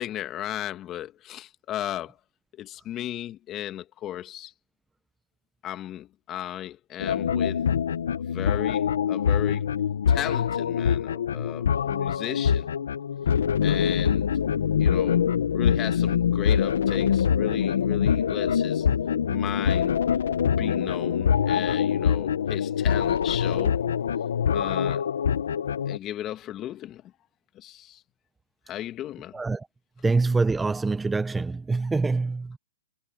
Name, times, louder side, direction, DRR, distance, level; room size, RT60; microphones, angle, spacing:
voice 1, 0.0-2.2 2.6-4.5 5.6-7.7 8.3-9.7 10.1-12.7 13.6-14.3 14.8-18.9 19.3-19.9 20.6-23.8 24.5-25.0 25.9-27.0 27.5-28.0 28.7-29.4, left 12 dB, 25° left, 1.5 m, -35 dB
sound 1, 7.0-26.0, left 8 dB, 75° left, 0.8 m, -24 dB
voice 2, 29.3-29.7 30.0-32.6, right 3 dB, 10° right, 0.6 m, -25 dB
hypercardioid pair, 140°, 0 cm